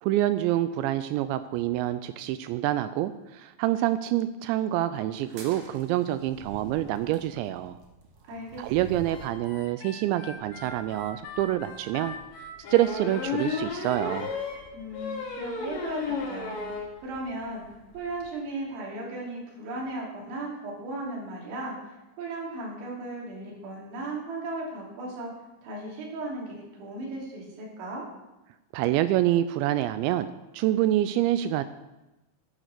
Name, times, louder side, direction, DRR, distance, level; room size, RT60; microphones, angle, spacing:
voice 1, 0.0-7.8 8.6-12.2 12.7-14.3 28.7-30.3 30.5-31.6, right 13 dB, 85° right, 12 dB, 2.6 m, -26 dB
sound 1, 5.2-9.4, right 3 dB, 55° right, 2.3 m, -47 dB
voice 2, 8.3-8.6 14.7-16.5 17.0-17.6 17.9-25.3 25.6-28.0, right 2 dB, 70° right, -3 dB, 5.4 m, -36 dB
Harmonica, 9.1-14.6, left 2 dB, 85° left, 4.9 m, -43 dB
sound 2, 10.9-11.0 11.4-11.5 12.6-16.9 17.3-17.4 17.7-17.8 18.0-18.2, left 4 dB, 65° left, 4.5 m, -33 dB
10.5 x 9.2 x 6.7 m, 1.0 s
omnidirectional pair, 5.6 m